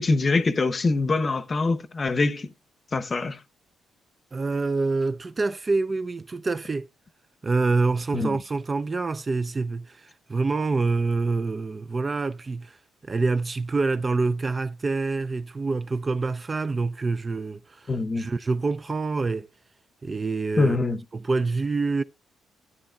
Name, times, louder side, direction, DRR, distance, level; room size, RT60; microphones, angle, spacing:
voice 1, 0.0-2.5 2.9-3.4 8.1-8.4 17.9-18.3 20.6-21.0, left 3 dB, 35° left, 0.8 m, -24 dB
voice 2, 4.3-6.9 7.4-12.8 13.0-19.5 20.0-20.8 21.1-22.0, right 3 dB, 30° right, 0.4 m, -26 dB
13.0 x 8.6 x 2.3 m
cardioid pair, 90°, 0 cm